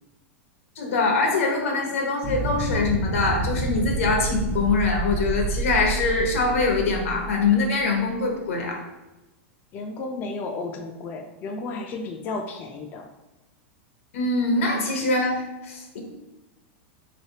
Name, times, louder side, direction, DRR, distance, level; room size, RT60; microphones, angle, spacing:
voice 1, 0.8-8.8 14.1-16.0, left 3 dB, 85° left, 2 dB, 1.0 m, -23 dB
sound 1, 2.2-8.0, right 2 dB, 30° right, 0.6 m, -29 dB
voice 2, 9.7-13.1, left 3 dB, 25° left, 2 dB, 0.4 m, -33 dB
3.8 x 3.2 x 2.8 m, 1.0 s
supercardioid pair, 145°, 7 cm